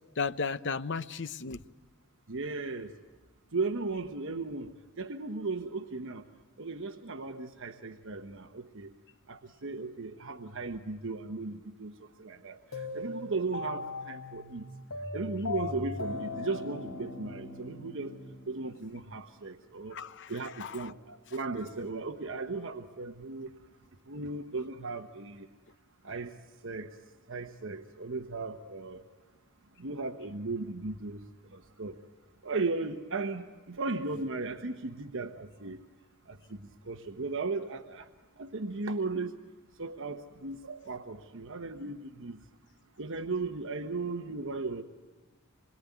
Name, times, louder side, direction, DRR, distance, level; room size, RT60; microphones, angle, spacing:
voice 1, 0.2-1.6 19.9-20.3 20.6-20.9, left 5 dB, 55° left, 13 dB, 0.8 m, -34 dB
voice 2, 2.3-2.9 3.5-4.7 5.0-6.2 6.6-8.9 9.3-14.6 15.1-18.1 18.5-20.0 20.3-23.5 24.1-25.5 26.0-26.3 26.6-26.9 27.3-29.0 29.8-31.2 31.5-32.0 32.4-35.8 36.3-38.1 38.4-39.3 39.8-42.4 43.0-44.8, right 3 dB, 60° right, 6 dB, 1.1 m, -36 dB
sound 1, 12.7-18.9, left 3 dB, 70° left, 4.0 m, -39 dB
26.5 x 22.5 x 9.3 m, 1.3 s
head